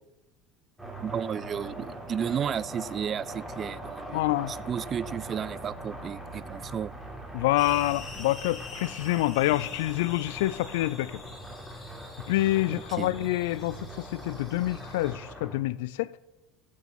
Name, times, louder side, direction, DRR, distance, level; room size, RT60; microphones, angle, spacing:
sound 1, 0.8-15.6, right 1 dB, ahead, 4.1 m, -41 dB
voice 1, 1.0-4.2 4.5-6.9 12.7-13.3, right 8 dB, 40° right, 0.4 m, -33 dB
voice 2, 4.1-4.5 7.3-11.2 12.3-16.2, left 17 dB, 75° left, 0.3 m, -27 dB
sound 2, 7.6-15.1, left 4 dB, 35° left, 2.6 m, -46 dB
15.0 x 7.3 x 4.2 m
hypercardioid pair, 75°, 0 cm